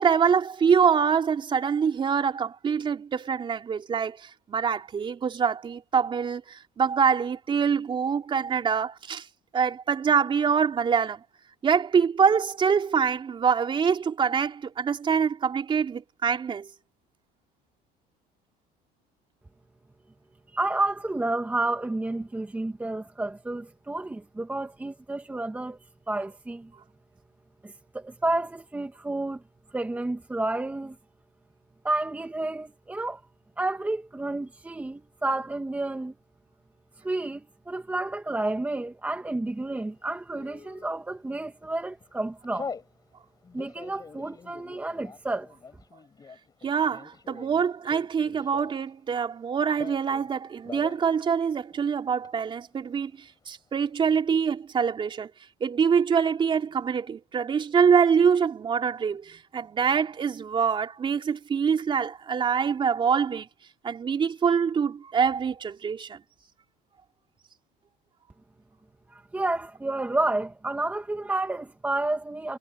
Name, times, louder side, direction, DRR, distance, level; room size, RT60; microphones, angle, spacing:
voice 1, 0.0-9.3 9.5-11.2 11.6-16.7 46.6-53.1 53.5-55.3 55.6-63.5 63.8-66.2, right 6 dB, 30° right, 3.7 m, -25 dB
voice 2, 20.5-25.8 26.1-26.7 27.6-29.4 29.7-31.0 31.8-33.2 33.6-36.1 37.0-42.7 43.5-45.5 69.1-72.6, right 2 dB, 10° right, 2.0 m, -30 dB
Telephone, 40.4-40.9 41.5-41.7 42.0-42.9 43.4-48.9 49.2-50.3 50.6-51.0 51.3-51.4 51.7-52.3, left 5 dB, 20° left, 4.7 m, -43 dB
cardioid pair, 150°, 18 cm